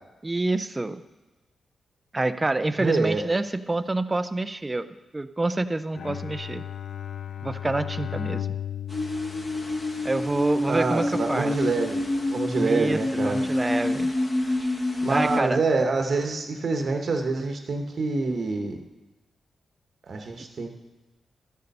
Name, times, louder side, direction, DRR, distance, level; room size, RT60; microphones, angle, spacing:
voice 1, 0.2-1.0 2.1-4.9 5.1-6.6 7.4-8.5 10.0-11.6 12.5-14.1 14.4-14.8 15.1-15.6, right 2 dB, 15° right, 12 dB, 0.4 m, -27 dB
voice 2, 2.8-3.2 10.7-13.5 15.0-18.8 20.1-20.7, right 3 dB, 45° right, 4 dB, 1.0 m, -26 dB
Bowed string instrument, 5.9-10.3, left 9 dB, 75° left, 0.3 m, -35 dB
sound 1, 8.9-15.4, left 1 dB, 25° left, 1.0 m, -27 dB
13.0 x 6.7 x 5.3 m, 1.2 s
wide cardioid pair, 165°, 0 cm